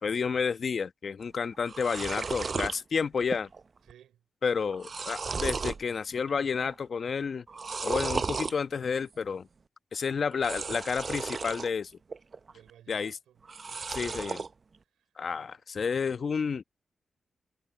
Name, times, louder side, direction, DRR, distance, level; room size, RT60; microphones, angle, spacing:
voice 1, 0.0-3.5 4.4-7.4 7.8-9.5 9.9-11.9 12.9-13.2 13.9-14.4 15.2-16.6, left 6 dB, 65° left, 1.0 m, -30 dB
sound 1, 1.2-1.3 1.5-2.8 3.2-3.6 3.9-4.0 4.5-5.8 6.3-6.7 7.5-8.5 10.3-11.7 12.1-12.7 13.4-14.5, right 4 dB, 55° right, 0.6 m, -34 dB
voice 2, 3.8-4.2 12.5-14.0 14.8-15.5, right 11 dB, 90° right, 4.5 m, -59 dB
supercardioid pair, 40°, 0 cm